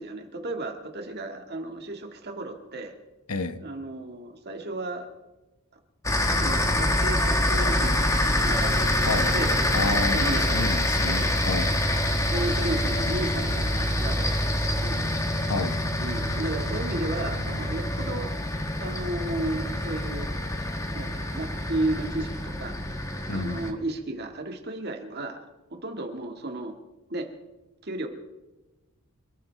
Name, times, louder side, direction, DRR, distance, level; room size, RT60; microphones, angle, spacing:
voice 1, 0.0-2.9 3.6-5.1 6.4-10.7 11.0-11.3 12.3-15.0 16.0-18.3 18.8-20.3 20.9-22.8 23.3-25.5 25.7-26.8 27.1-27.3 27.8-28.1, right 2 dB, 45° right, 4 dB, 1.8 m, -34 dB
voice 2, 3.3-3.6 9.1-9.3 9.7-11.7 15.5-15.8 23.3-23.7, left 3 dB, 85° left, 11 dB, 1.0 m, -30 dB
sound 1, 6.0-23.7, left 1 dB, 15° left, 1.2 m, -26 dB
27.0 x 14.0 x 3.4 m, 1.1 s
head